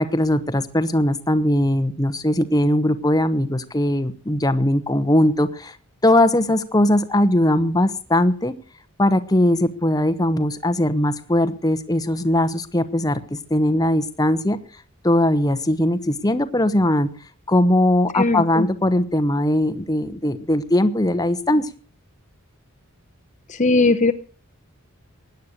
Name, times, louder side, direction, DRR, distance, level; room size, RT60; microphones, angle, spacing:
voice 1, 0.0-5.8 6.0-8.5 9.0-14.6 15.0-17.1 17.5-21.7, left 1 dB, 15° left, 11 dB, 1.0 m, -20 dB
voice 2, 18.1-18.7 23.5-24.1, left 3 dB, 35° left, 9 dB, 0.8 m, -18 dB
17.0 x 10.5 x 6.6 m, 0.41 s
head